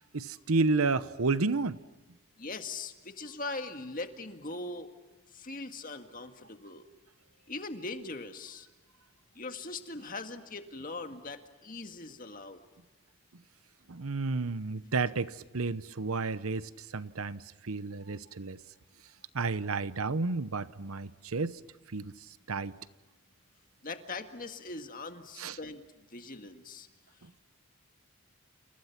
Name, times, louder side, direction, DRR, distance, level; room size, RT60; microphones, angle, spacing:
voice 1, 0.0-1.8 13.9-18.6 19.3-21.6 21.9-22.1 22.5-22.8 25.4-25.6 27.2-27.3, right 3 dB, 80° right, 0.9 m, -31 dB
voice 2, 2.4-4.9 5.3-6.9 7.5-8.7 9.4-12.6 23.8-25.8 26.1-26.9, left 3 dB, 40° left, 1.9 m, -41 dB
30.0 x 29.0 x 6.0 m
head